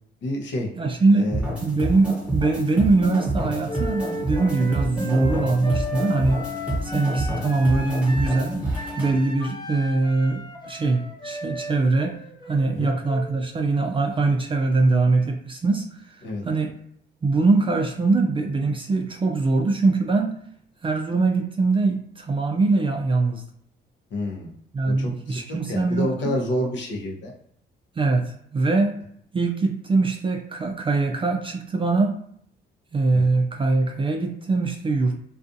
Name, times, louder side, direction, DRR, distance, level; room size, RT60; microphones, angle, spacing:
voice 1, 0.2-0.7 1.1-1.4 6.6-6.8 12.7-12.9 16.2-16.4 24.1-24.5 24.8-27.3 33.1-33.3, left 1 dB, 70° left, -1 dB, 0.8 m, -29 dB
voice 2, 0.8-1.3 1.6-6.4 6.8-8.6 9.0-12.2 12.5-16.7 17.2-20.4 20.8-23.4 24.7-26.4 28.0-29.0 29.3-32.2 32.9-35.2, right 3 dB, 25° right, 3 dB, 0.3 m, -22 dB
sound 1, 1.3-9.1, right 1 dB, 5° right, 0.9 m, -28 dB
Wind instrument woodwind instrument, 3.7-13.5, left 1 dB, 20° left, 0.6 m, -36 dB
2.4 x 2.3 x 2.6 m, 0.68 s
cardioid pair, 90°, 20 cm